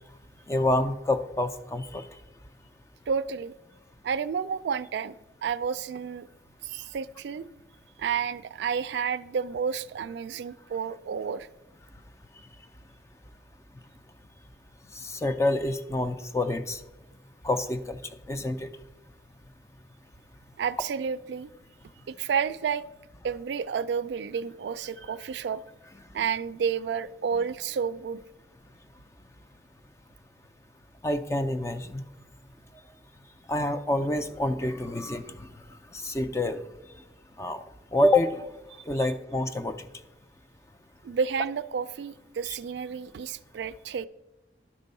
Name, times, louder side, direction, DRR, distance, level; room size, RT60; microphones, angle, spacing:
voice 1, 0.5-2.0 15.0-16.8 17.4-18.0 18.3-18.7 31.0-32.0 33.5-35.5 35.9-36.6 37.4-37.6 37.9-38.4 38.9-39.8 42.5-42.6, left 1 dB, 15° left, 10 dB, 0.3 m, -27 dB
voice 2, 3.1-3.5 4.0-5.1 5.4-6.3 6.6-7.5 8.0-11.5 20.6-21.5 22.1-22.8 23.2-25.6 26.1-28.2 39.0-39.1 41.0-44.1, right 6 dB, 80° right, 15 dB, 0.3 m, -30 dB
11.5 x 4.5 x 5.3 m, 1.0 s
head